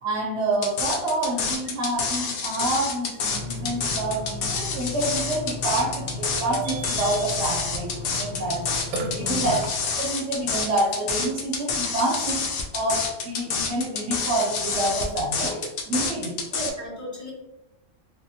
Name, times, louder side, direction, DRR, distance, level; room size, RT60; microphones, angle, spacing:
voice 1, 0.0-9.6 10.0-12.5 12.7-16.4, right 2 dB, 65° right, -2 dB, 0.8 m, -28 dB
sound 1, 0.6-16.7, left 5 dB, 85° left, 1.0 m, -28 dB
Burping eructation, 3.3-9.7, equal, 85° right, 1.0 m, -33 dB
voice 2, 9.0-9.6 16.5-17.3, equal, 15° left, -6 dB, 1.0 m, -35 dB
3.5 x 2.2 x 2.7 m, 0.95 s
omnidirectional pair, 1.4 m